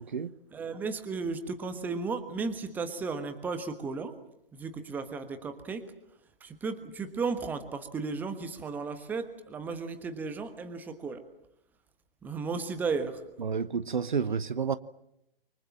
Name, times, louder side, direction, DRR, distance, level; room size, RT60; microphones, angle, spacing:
voice 1, 0.0-0.3 13.4-14.8, right 6 dB, 55° right, 1.0 m, -30 dB
voice 2, 0.5-4.2 4.5-5.9 6.4-11.2 12.2-13.2, right 4 dB, 5° right, 1.3 m, -34 dB
29.5 x 24.5 x 7.6 m
figure-of-eight pair, 135°, 29 cm